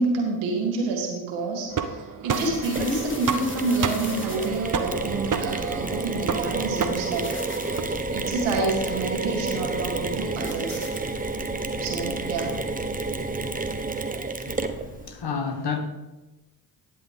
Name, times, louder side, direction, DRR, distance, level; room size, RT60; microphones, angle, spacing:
voice 1, 0.0-7.3 7.6-10.8 11.8-12.5, right 3 dB, 85° right, 0 dB, 2.0 m, -28 dB
sound 1, 1.7-7.8, right 6 dB, 45° right, 0.9 m, -31 dB
sound 2, 2.3-14.1, left 2 dB, 25° left, 2.0 m, -40 dB
Mechanisms, 2.8-15.1, right 3 dB, 20° right, 1.0 m, -30 dB
voice 2, 14.4-15.8, left 5 dB, 60° left, 6 dB, 1.6 m, -31 dB
11.0 x 8.4 x 3.6 m, 1.1 s
hypercardioid pair, 40°, 45 cm